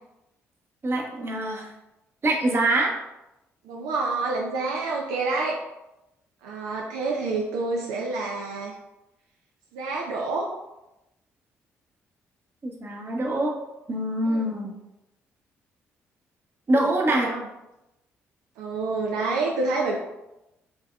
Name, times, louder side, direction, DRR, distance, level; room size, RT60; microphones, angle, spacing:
voice 1, 0.8-1.7 2.2-2.9 12.6-13.5 13.9-14.7 16.7-17.3, right 1 dB, 40° right, 0 dB, 0.9 m, -24 dB
voice 2, 3.6-5.6 6.4-8.7 9.7-10.5 14.3-14.5 17.1-17.4 18.6-20.0, right 3 dB, 80° right, -1 dB, 0.4 m, -28 dB
4.5 x 2.8 x 2.2 m, 0.92 s
hypercardioid pair, 50°, 6 cm